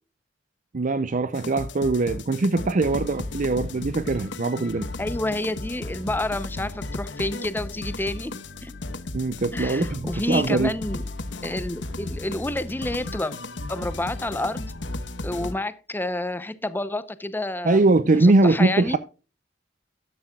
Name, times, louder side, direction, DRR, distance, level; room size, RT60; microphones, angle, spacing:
voice 1, 0.7-4.9 9.1-10.7 17.6-19.0, right 2 dB, 45° right, 0.5 m, -22 dB
sound 1, 1.3-15.5, left 2 dB, 70° left, 1.1 m, -34 dB
voice 2, 5.0-8.3 8.6-8.7 9.5-11.0 11.4-13.3 13.7-14.7 15.2-17.8 18.1-19.0, left 1 dB, 10° left, 0.7 m, -29 dB
13.0 x 10.5 x 2.4 m
head